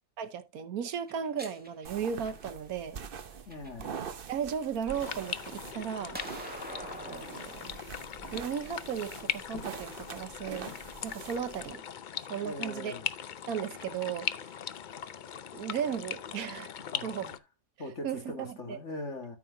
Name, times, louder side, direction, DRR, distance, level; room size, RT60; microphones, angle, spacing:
voice 1, 0.2-3.0 4.3-6.2 6.8-7.7 8.3-10.8 11.0-11.8 12.3-12.9 13.5-14.6 15.5-16.7 17.0-17.3 18.0-18.8, right 8 dB, 80° right, 1.3 m, -36 dB
sound 1, 1.0-2.7 3.3-4.2 4.6-7.3, right 1 dB, 5° right, 1.6 m, -45 dB
sound 2, 1.8-11.7, right 7 dB, 45° right, 0.8 m, -45 dB
voice 2, 3.5-4.0 12.4-13.1 16.8-17.4 17.8-19.4, left 2 dB, 50° left, 2.4 m, -41 dB
sound 3, 4.9-17.4, left 8 dB, 75° left, 0.4 m, -40 dB
13.0 x 5.6 x 2.7 m
omnidirectional pair, 1.5 m